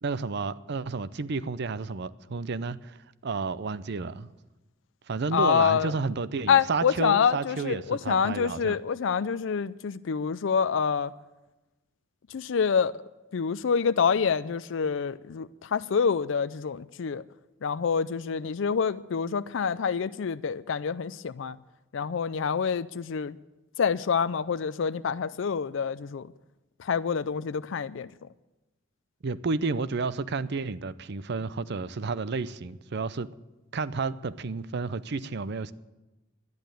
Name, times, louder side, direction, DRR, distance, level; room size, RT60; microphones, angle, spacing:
voice 1, 0.0-4.3 5.1-8.8 29.2-33.3 33.7-35.7, right 4 dB, 55° right, 0.6 m, -31 dB
voice 2, 5.3-5.9 6.5-11.1 12.3-12.9 13.3-17.2 17.6-21.6 21.9-23.4 23.8-26.3 26.8-28.1, left 6 dB, 65° left, 0.4 m, -27 dB
12.0 x 10.5 x 9.0 m
head